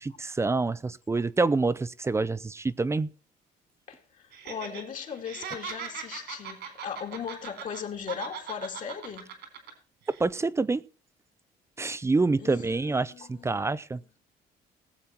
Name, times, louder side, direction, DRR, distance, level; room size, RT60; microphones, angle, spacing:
voice 1, 0.0-3.1 10.1-10.8 11.8-14.0, right 3 dB, 15° right, 0.5 m, -27 dB
voice 2, 3.9-9.3 12.4-13.6 14.0-14.1, left 7 dB, 50° left, 2.4 m, -38 dB
Laughter, 4.3-4.8 5.1-7.8 8.1-9.7 10.1-10.2, right 7 dB, 80° right, 3.9 m, -39 dB
19.5 x 7.5 x 4.4 m
cardioid pair, 110°, 17 cm